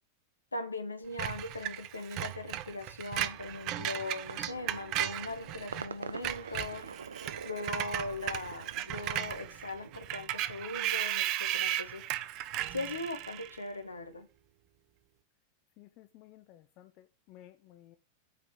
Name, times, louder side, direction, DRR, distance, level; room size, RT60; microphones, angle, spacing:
voice 1, 0.5-6.9 7.4-12.0 12.7-14.3, left 2 dB, 80° left, 1.5 m, -39 dB
Screech, 1.2-5.9 6.1-13.6, right 13 dB, 40° right, 0.8 m, -36 dB
sound 1, 4.2-10.1, right 5 dB, 70° right, 0.6 m, -46 dB
voice 2, 15.8-18.0, left 14 dB, 40° left, 0.8 m, -56 dB
8.6 x 5.1 x 6.8 m
figure-of-eight pair, 90°, 0 cm